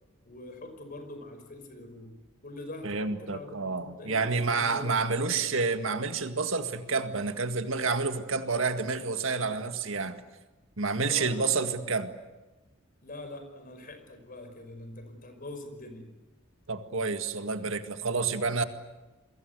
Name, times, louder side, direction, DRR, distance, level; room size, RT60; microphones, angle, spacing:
voice 1, 0.3-2.2 2.4-5.6 11.0-11.5 11.8-12.0 13.0-16.1, left 1 dB, 40° left, 8 dB, 5.4 m, -43 dB
voice 2, 2.8-10.2 10.8-12.1 16.7-18.6, right 4 dB, 65° right, 7 dB, 2.0 m, -29 dB
29.5 x 23.0 x 8.2 m, 1.1 s
head